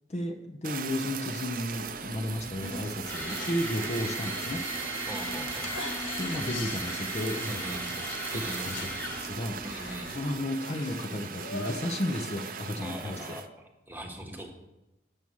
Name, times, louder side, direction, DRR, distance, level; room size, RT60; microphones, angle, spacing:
voice 1, 0.1-4.6 6.2-9.6 10.1-13.4, left 1 dB, 35° left, 5 dB, 0.6 m, -33 dB
Fire, 0.6-13.5, right 6 dB, 45° right, 0.5 m, -39 dB
sound 1, 1.7-10.4, equal, 10° left, 1.3 m, -38 dB
sound 2, 2.6-13.0, left 3 dB, 90° left, 1.0 m, -44 dB
voice 2, 5.1-5.9 7.5-7.9 8.3-8.8 9.6-10.1 12.8-13.5 13.9-14.5, right 1 dB, 10° right, 2 dB, 1.1 m, -41 dB
7.6 x 7.1 x 6.3 m, 0.98 s
head